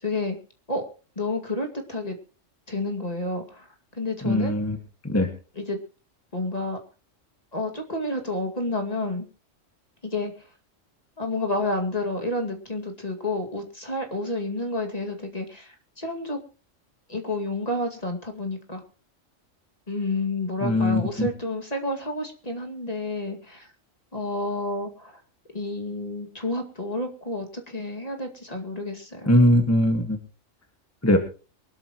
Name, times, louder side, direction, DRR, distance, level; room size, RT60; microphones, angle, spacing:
voice 1, 0.0-0.4 0.7-0.8 1.2-2.2 2.7-3.7 3.9-4.6 5.6-5.8 6.3-6.8 7.5-9.3 10.0-10.3 11.2-16.4 17.1-18.8 19.9-23.7 24.1-25.2 25.5-29.3, left 2 dB, 30° left, 3 dB, 2.3 m, -30 dB
voice 2, 4.2-4.8 5.0-5.3 20.6-21.3 29.3-30.2 31.0-31.2, left 1 dB, 10° left, 4 dB, 1.7 m, -20 dB
23.0 x 12.5 x 3.0 m, 0.36 s
omnidirectional pair, 1.3 m